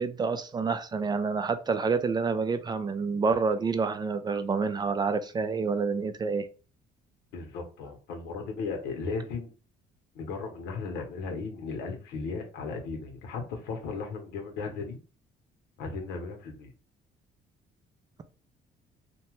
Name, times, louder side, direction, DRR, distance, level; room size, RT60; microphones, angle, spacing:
voice 1, 0.0-6.5, right 4 dB, 25° right, 0.3 m, -28 dB
voice 2, 7.3-9.5 10.1-15.0 15.8-16.7, left 4 dB, 85° left, 0.9 m, -36 dB
2.8 x 2.2 x 3.1 m
cardioid pair, 110°, 17 cm